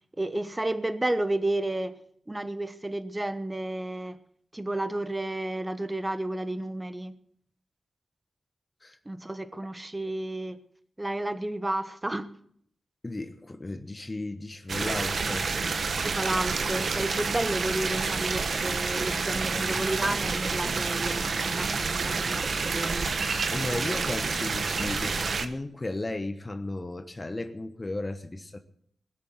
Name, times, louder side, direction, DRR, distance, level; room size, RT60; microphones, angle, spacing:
voice 1, 0.2-2.0 2.3-4.2 4.5-7.2 9.1-10.6 11.0-12.3 16.0-23.1, right 1 dB, 20° right, 1.1 m, -31 dB
voice 2, 13.0-15.5 23.5-28.6, left 2 dB, 30° left, 1.1 m, -35 dB
sound 1, 14.7-25.5, right 4 dB, 65° right, 1.2 m, -29 dB
21.0 x 7.0 x 7.9 m
cardioid pair, 70°, 0 cm